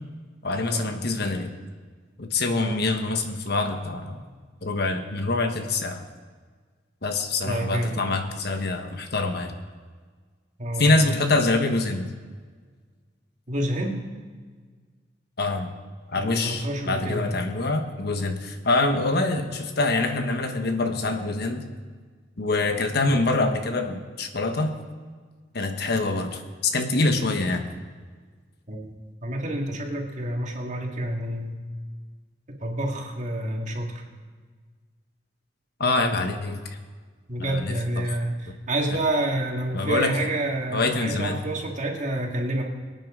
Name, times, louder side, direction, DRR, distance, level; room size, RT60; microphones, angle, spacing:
voice 1, 0.4-1.5 2.2-4.2 4.6-6.0 7.0-9.5 10.8-12.1 15.4-15.7 16.1-21.7 22.4-24.7 25.5-27.6 35.8-36.8 37.4-37.8 39.7-40.2 40.7-41.4, left 2 dB, 60° left, 6 dB, 1.2 m, -25 dB
voice 2, 7.4-8.0 10.6-11.1 13.5-14.0 16.1-17.4 28.7-28.9 29.2-31.6 32.6-34.0 37.3-42.6, right 1 dB, 40° right, 1 dB, 2.0 m, -28 dB
23.0 x 9.2 x 3.7 m, 1.5 s
head